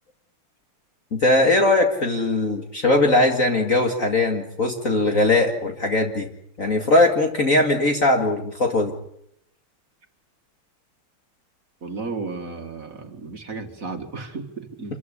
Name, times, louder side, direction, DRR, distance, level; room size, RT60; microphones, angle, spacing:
voice 1, 1.1-6.3 6.6-8.9, left 2 dB, 40° left, 3 dB, 2.3 m, -20 dB
voice 2, 11.8-15.0, right 3 dB, 40° right, 6 dB, 2.4 m, -34 dB
26.5 x 14.5 x 9.8 m, 0.75 s
omnidirectional pair, 2.4 m